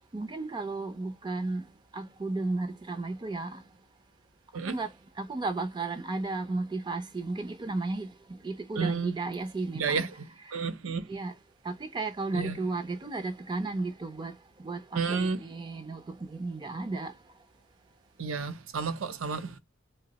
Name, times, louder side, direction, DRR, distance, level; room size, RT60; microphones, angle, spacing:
voice 1, 0.1-1.6 1.9-3.6 4.7-4.9 5.2-10.0 10.5-10.6 11.1-11.3 11.6-14.3 14.6-17.1, right 3 dB, 20° right, 0.4 m, -34 dB
voice 2, 8.8-9.1 9.7-11.0 12.3-12.6 14.9-15.4 18.2-19.6, right 5 dB, 75° right, 0.6 m, -31 dB
2.6 x 2.0 x 3.9 m
head